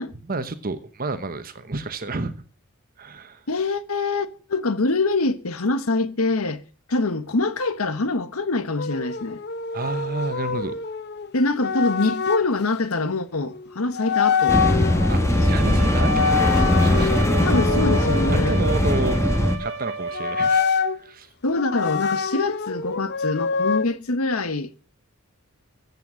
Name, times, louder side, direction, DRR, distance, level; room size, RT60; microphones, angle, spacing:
voice 1, 0.2-2.3 3.0-3.4 9.7-10.8 15.1-17.3 18.5-19.2 19.6-20.7 21.0-21.3, right 3 dB, 40° right, 1.0 m, -30 dB
voice 2, 3.5-6.6 6.9-9.4 11.3-14.6 15.3-15.8 17.4-18.6 21.4-24.7, left 3 dB, 80° left, 1.2 m, -24 dB
sound 1, 8.8-12.5 13.5-13.7 13.9-15.3 15.9-19.3 20.1-21.0 21.5-23.8, left 5 dB, 50° left, 0.8 m, -25 dB
sound 2, 14.5-19.6, left 1 dB, 15° left, 1.4 m, -20 dB
Bowed string instrument, 15.1-20.9, right 3 dB, 70° right, 1.8 m, -31 dB
14.5 x 8.1 x 6.3 m
head